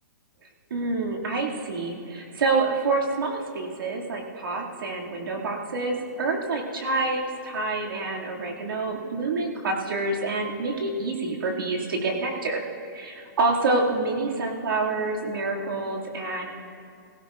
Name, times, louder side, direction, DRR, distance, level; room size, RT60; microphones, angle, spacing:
voice 1, 0.7-12.6 12.9-16.5, right 3 dB, 80° right, -1 dB, 2.3 m, -27 dB
18.0 x 16.0 x 2.5 m, 2.4 s
hypercardioid pair, 175°, 11 cm